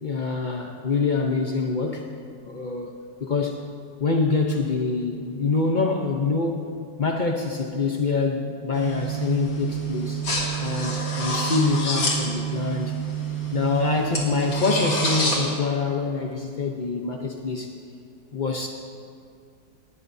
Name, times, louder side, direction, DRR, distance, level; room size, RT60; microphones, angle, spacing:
voice 1, 0.0-2.1 2.4-3.6 4.0-6.6 7.0-10.3 10.6-13.0 13.5-17.7 18.3-18.7, left 4 dB, 55° left, 1 dB, 0.5 m, -25 dB
sound 1, 8.7-15.4, right 3 dB, 80° left, 3.3 m, -27 dB
20.0 x 19.0 x 2.7 m, 2.3 s
omnidirectional pair, 2.0 m